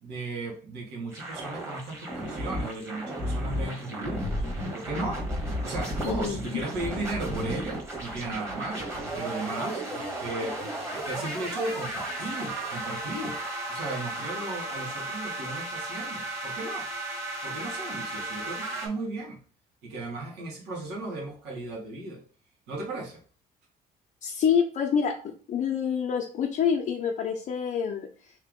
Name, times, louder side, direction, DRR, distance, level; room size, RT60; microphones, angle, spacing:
voice 1, 0.0-5.2 5.6-13.4 13.7-16.9 17.4-19.4 19.8-22.2 22.7-23.2, right 2 dB, 85° right, -1 dB, 1.5 m, -36 dB
sound 1, 1.1-18.9, right 1 dB, 15° right, 1.3 m, -34 dB
voice 2, 6.0-6.6 24.2-28.3, left 7 dB, 50° left, 1 dB, 0.6 m, -27 dB
3.3 x 2.8 x 3.6 m, 0.42 s
cardioid pair, 110°, 17 cm